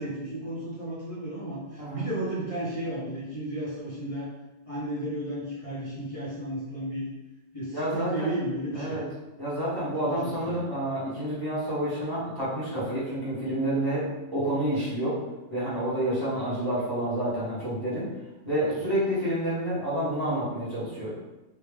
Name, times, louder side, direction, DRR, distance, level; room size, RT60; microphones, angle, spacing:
voice 1, 0.0-4.3 4.6-7.0 7.5-9.0 10.0-10.6, right 1 dB, 30° left, -10 dB, 1.0 m, -33 dB
voice 2, 7.7-8.3 8.7-9.0 9.4-14.0 14.3-15.2 15.5-18.1 18.4-21.1, right 1 dB, 20° right, -11 dB, 1.1 m, -29 dB
3.2 x 2.8 x 3.3 m, 1.0 s
omnidirectional pair, 1.2 m